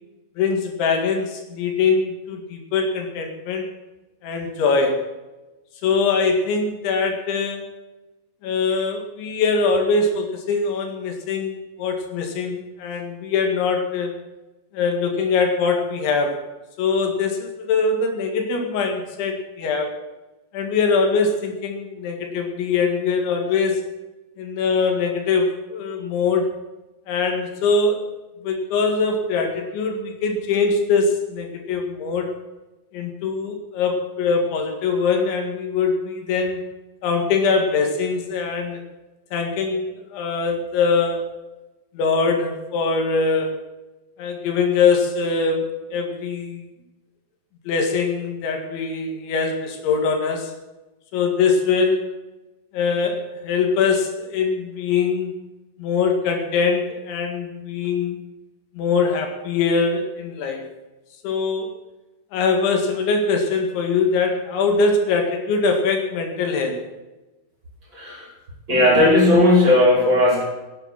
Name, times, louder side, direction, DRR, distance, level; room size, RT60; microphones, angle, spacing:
voice 1, 0.4-3.7 4.2-5.1 5.8-7.7 8.4-14.1 14.7-16.4 16.8-19.9 20.5-23.8 24.4-26.5 27.1-28.1 28.4-32.3 32.9-36.6 37.0-38.8 39.3-41.3 41.9-43.5 44.2-46.6 47.7-50.5 51.1-52.1 52.7-55.3 55.8-58.2 58.8-60.7 61.2-61.7 62.3-66.8, left 4 dB, 80° left, 4 dB, 4.4 m, -22 dB
voice 2, 67.9-68.3 68.7-70.4, left 1 dB, 25° right, -3 dB, 5.4 m, -16 dB
16.0 x 10.0 x 6.2 m, 1.1 s
omnidirectional pair, 5.2 m